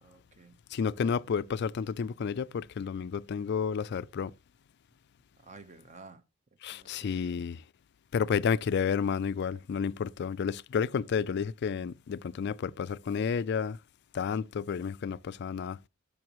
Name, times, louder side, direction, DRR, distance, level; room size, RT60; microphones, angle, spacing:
voice 1, 0.0-0.6 5.4-6.2 6.7-7.4, right 3 dB, 35° right, 0.9 m, -52 dB
voice 2, 0.7-4.3 6.6-7.6 8.1-13.8 14.1-15.8, left 6 dB, 55° left, 0.3 m, -31 dB
10.5 x 7.0 x 3.0 m
head